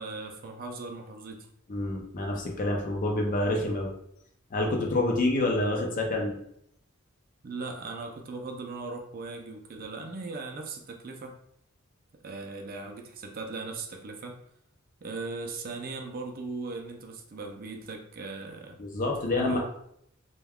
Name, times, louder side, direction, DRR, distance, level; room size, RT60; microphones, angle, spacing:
voice 1, 0.0-1.4 7.4-11.4 12.2-14.4 15.0-18.8 19.4-19.6, right 3 dB, 40° right, 3 dB, 0.3 m, -38 dB
voice 2, 1.7-3.9 4.5-6.4 18.8-19.6, left 2 dB, 35° left, 1 dB, 0.5 m, -27 dB
2.2 x 2.2 x 3.4 m, 0.71 s
head